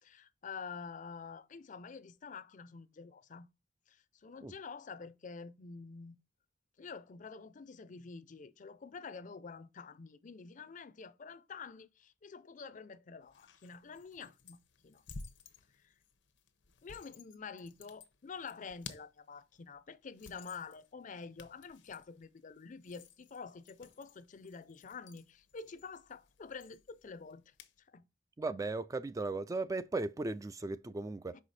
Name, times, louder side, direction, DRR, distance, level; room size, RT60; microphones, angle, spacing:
voice 1, 0.0-3.5 3.9-6.2 6.8-14.6 14.8-15.0 15.7-15.9 16.8-28.0, left 5 dB, 45° left, 0.5 m, -48 dB
sound 1, 13.2-27.8, left 4 dB, 90° left, 0.9 m, -56 dB
voice 2, 28.4-31.4, right 3 dB, 20° right, 0.3 m, -37 dB
5.6 x 4.9 x 4.1 m
head